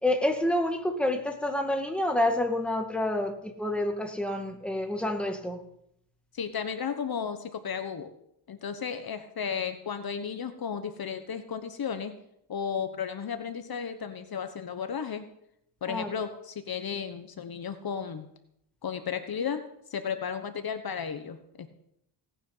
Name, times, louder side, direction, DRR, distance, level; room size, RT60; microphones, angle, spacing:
voice 1, 0.0-5.6 15.9-16.1, left 1 dB, ahead, 3 dB, 2.0 m, -28 dB
voice 2, 6.3-8.1 8.5-12.1 12.5-15.2 15.8-18.3 18.8-19.6 19.9-21.7, left 7 dB, 55° left, 8 dB, 1.2 m, -34 dB
17.5 x 10.0 x 5.7 m, 0.76 s
cardioid pair, 110°, 44 cm